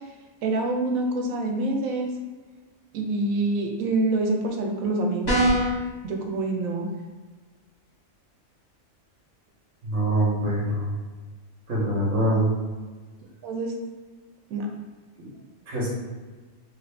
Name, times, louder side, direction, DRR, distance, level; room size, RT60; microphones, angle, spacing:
voice 1, 0.4-2.1 2.9-5.4 6.0-6.9 13.4-13.7 14.5-14.7, right 2 dB, 90° right, 2 dB, 1.0 m, -26 dB
sound 1, 5.2-5.8, right 1 dB, 40° left, 1.4 m, -21 dB
voice 2, 9.8-10.9 11.7-12.5 15.2-15.3 15.7-15.9, right 1 dB, 65° right, -6 dB, 1.1 m, -24 dB
3.0 x 2.5 x 3.2 m, 1.4 s
omnidirectional pair, 1.4 m